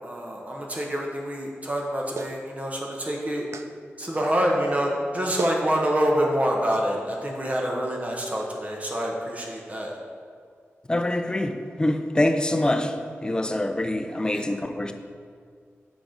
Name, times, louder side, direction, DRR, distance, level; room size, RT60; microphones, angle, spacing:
voice 1, 0.0-3.5 4.0-9.9 14.3-14.4, equal, 30° right, -1 dB, 0.9 m, -26 dB
Clapping, 2.2-2.4 3.5-3.7 5.0-5.1 5.4-5.6 6.7-6.9, right 5 dB, 85° right, 0.3 m, -33 dB
voice 2, 10.9-14.9, left 1 dB, 20° left, 6 dB, 0.4 m, -25 dB
6.0 x 3.9 x 5.0 m, 2.2 s
wide cardioid pair, 85°, 5 cm